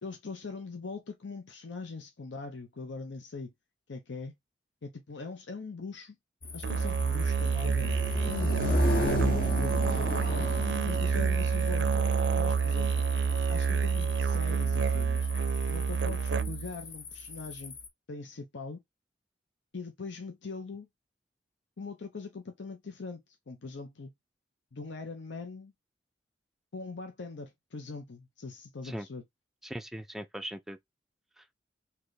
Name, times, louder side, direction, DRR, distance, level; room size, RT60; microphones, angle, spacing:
voice 1, 0.0-3.5 3.9-4.3 4.8-6.1 6.5-7.9 8.2-10.5 10.8-12.1 12.3-13.0 13.5-15.3 15.7-17.8 18.1-18.8 19.7-20.9 21.8-24.1 24.7-25.7 26.7-29.2, left 4 dB, 90° left, 0.7 m, -41 dB
sound 1, 6.4-17.9, left 2 dB, 50° left, 0.9 m, -35 dB
Musical instrument, 6.6-16.8, right 5 dB, 70° right, 0.4 m, -28 dB
voice 2, 29.6-30.8 31.4-31.5, equal, ahead, 0.4 m, -40 dB
3.3 x 2.9 x 3.9 m
head